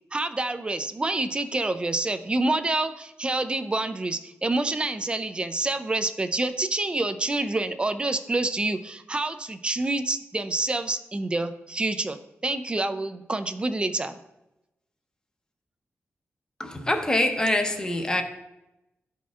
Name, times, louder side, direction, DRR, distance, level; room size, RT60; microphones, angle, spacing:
voice 1, 0.1-12.2 12.4-14.2, right 2 dB, 25° right, 10 dB, 0.4 m, -27 dB
voice 2, 16.6-18.2, left 1 dB, 15° left, 4 dB, 0.8 m, -24 dB
11.0 x 4.3 x 2.4 m, 0.91 s
wide cardioid pair, 115°, 5 cm